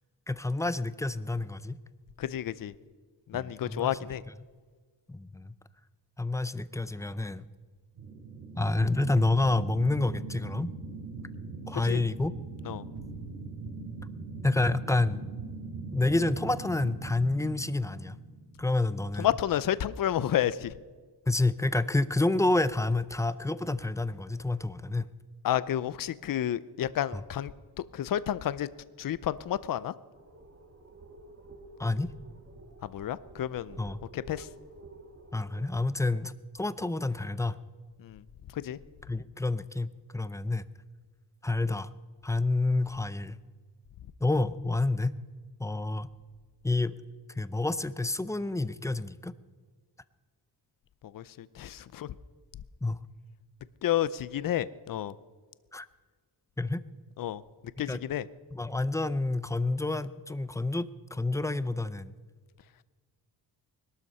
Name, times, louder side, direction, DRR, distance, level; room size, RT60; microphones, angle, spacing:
voice 1, 0.3-1.8 3.3-4.0 5.1-5.5 6.2-7.5 8.6-10.7 11.7-12.3 14.4-15.3 15.9-18.2 18.6-19.3 21.3-25.1 27.1-27.2 31.8-32.1 33.8-34.0 35.3-37.6 39.1-40.6 41.4-41.9 42.2-43.4 44.2-45.2 45.6-46.1 46.6-46.9 47.4-49.3 52.8-53.0 55.7-55.9 56.6-56.8 57.9-58.0 58.5-62.2, left 2 dB, 10° left, 15 dB, 0.5 m, -29 dB
voice 2, 2.2-2.7 3.3-4.2 11.7-12.0 12.7-12.8 19.2-20.8 25.4-27.5 27.8-28.7 29.0-29.9 32.8-33.8 34.1-34.5 38.0-38.2 38.5-38.8 51.1-52.1 53.8-55.1 57.2-57.4 57.8-58.3, left 11 dB, 55° left, 17 dB, 0.6 m, -30 dB
sound 1, 8.0-18.9, right 3 dB, 70° right, 4.1 m, -41 dB
sound 2, 30.1-35.7, right 2 dB, 30° right, 1.7 m, -51 dB
21.0 x 12.5 x 5.4 m, 1.5 s
wide cardioid pair, 120°, 41 cm